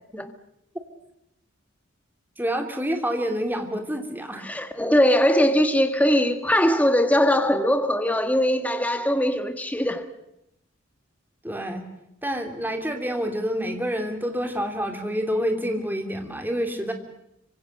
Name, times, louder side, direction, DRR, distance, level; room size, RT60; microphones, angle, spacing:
voice 1, 2.4-4.4 11.4-11.8 12.2-16.9, equal, 10° right, 2.9 m, -28 dB
voice 2, 4.4-10.1, equal, 5° left, 1.5 m, -21 dB
26.0 x 25.0 x 6.6 m
head